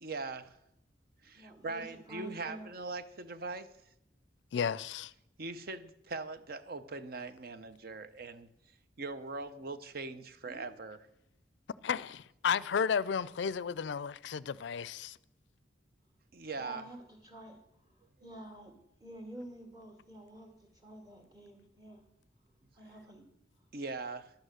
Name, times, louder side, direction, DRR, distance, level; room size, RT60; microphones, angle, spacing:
voice 1, 0.0-0.6 1.2-3.7 5.4-8.5 9.0-11.0 16.3-16.9 23.7-24.3, right 3 dB, 55° right, 0.7 m, -41 dB
voice 2, 1.3-2.7 10.4-10.7 16.5-17.6 18.2-18.7 19.0-22.0 22.8-23.2, right 1 dB, 25° right, 2.2 m, -49 dB
voice 3, 4.5-5.1 11.8-15.2, left 6 dB, 65° left, 0.4 m, -33 dB
11.5 x 8.9 x 6.4 m
head